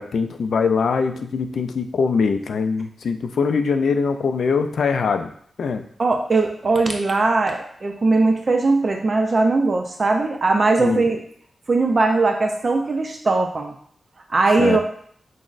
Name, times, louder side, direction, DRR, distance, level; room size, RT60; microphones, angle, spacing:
voice 1, 0.0-5.3 5.6-5.8 10.8-11.0 14.6-14.8, left 5 dB, 75° left, 8 dB, 0.3 m, -22 dB
voice 2, 6.0-11.2 11.7-13.7 14.3-14.8, right 3 dB, 40° right, 3 dB, 0.4 m, -19 dB
5.9 x 2.0 x 2.5 m, 0.63 s
wide cardioid pair, 130°, 0 cm